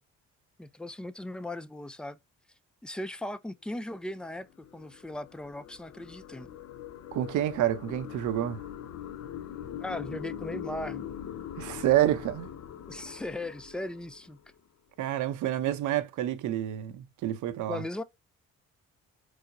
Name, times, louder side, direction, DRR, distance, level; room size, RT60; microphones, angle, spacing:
voice 1, 0.6-2.2 2.8-6.5 9.8-11.2 12.9-14.4 17.7-18.0, left 1 dB, 5° left, 0.3 m, -38 dB
sound 1, 4.0-14.6, left 9 dB, 60° left, 0.6 m, -42 dB
voice 2, 7.1-8.6 11.6-12.5 15.0-17.8, right 12 dB, 80° right, 0.7 m, -28 dB
4.7 x 2.1 x 2.5 m
cardioid pair, 90°, 30 cm